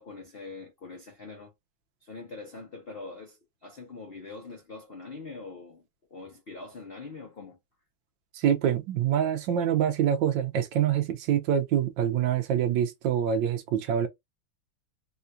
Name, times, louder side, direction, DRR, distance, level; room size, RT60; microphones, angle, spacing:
voice 1, 0.0-1.5 2.0-5.8 6.1-7.6, left 3 dB, 65° left, 0.5 m, -43 dB
voice 2, 8.3-14.1, right 9 dB, 70° right, 1.3 m, -25 dB
3.6 x 2.3 x 2.6 m
omnidirectional pair, 2.2 m